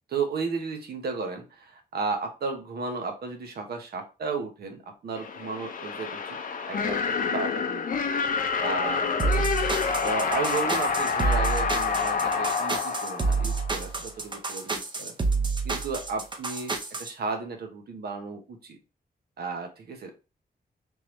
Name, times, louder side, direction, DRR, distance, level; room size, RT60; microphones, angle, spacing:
voice 1, 0.1-6.4 6.7-7.9 8.6-9.5 10.0-15.2 15.6-18.8 19.4-20.1, right 4 dB, 75° right, 4 dB, 1.0 m, -34 dB
sound 1, 5.2-14.0, left 5 dB, 60° left, 0.6 m, -28 dB
sound 2, 9.2-17.1, right 4 dB, 30° right, 0.6 m, -28 dB
3.7 x 3.2 x 3.0 m, 0.30 s
wide cardioid pair, 125°, 16 cm